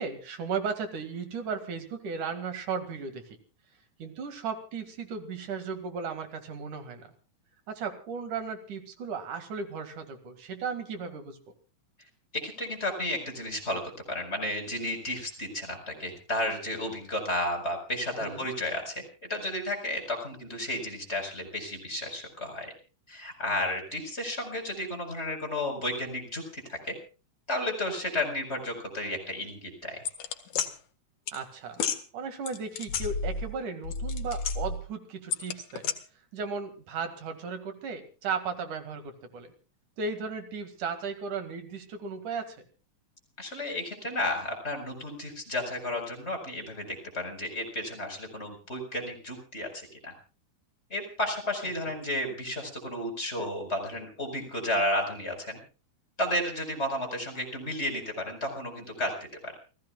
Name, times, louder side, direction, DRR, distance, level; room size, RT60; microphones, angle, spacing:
voice 1, 0.0-3.4 4.0-7.1 7.7-11.5 18.2-18.5 31.3-31.9 32.1-35.8 36.3-39.5 40.0-42.6, right 5 dB, 90° right, 7 dB, 3.7 m, -35 dB
voice 2, 12.3-13.8 14.1-22.7 23.1-26.9 27.5-30.0 43.4-50.1 50.9-55.6 56.2-59.5, left 1 dB, 20° left, 2 dB, 5.1 m, -32 dB
sound 1, 30.0-30.7 31.3-31.4 31.7-32.0 32.5-33.6 33.8-34.8 35.3-35.9, left 5 dB, 75° left, 2.8 m, -31 dB
29.0 x 17.0 x 2.4 m, 0.36 s
omnidirectional pair, 3.4 m